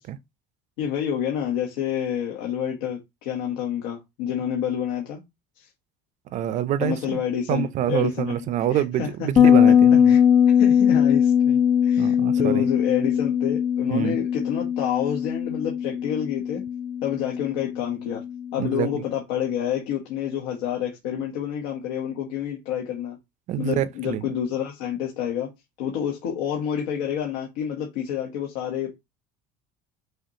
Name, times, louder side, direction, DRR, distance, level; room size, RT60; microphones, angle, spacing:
voice 1, 0.8-5.2 5.6-5.7 6.8-8.4 8.7-9.3 10.1-10.2 10.5-16.6 17.0-18.2 18.5-23.2 23.6-25.5 25.8-28.9, left 9 dB, 85° left, 1.1 m, -28 dB
voice 2, 6.3-7.2 7.5-10.2 12.0-12.7 13.9-14.2 18.6-19.0 23.5-24.3, right 11 dB, 40° right, 0.5 m, -26 dB
Bass guitar, 9.4-18.7, left 8 dB, 25° left, 0.4 m, -20 dB
5.7 x 2.9 x 2.8 m
cardioid pair, 145°, 18 cm